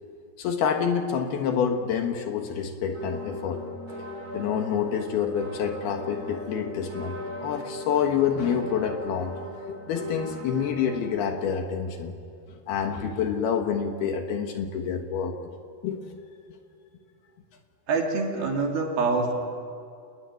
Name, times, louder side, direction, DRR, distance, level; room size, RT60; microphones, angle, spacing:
voice 1, 0.4-3.6 4.3-9.3 9.7-12.1 12.7-15.4 15.8-16.1, left 7 dB, 70° left, 5 dB, 3.1 m, -27 dB
sound 1, 2.9-11.3, left 1 dB, 20° right, 5.6 m, -38 dB
voice 2, 17.9-19.3, right 3 dB, 60° right, 1 dB, 4.4 m, -25 dB
28.0 x 20.5 x 9.3 m, 2.4 s
omnidirectional pair, 5.1 m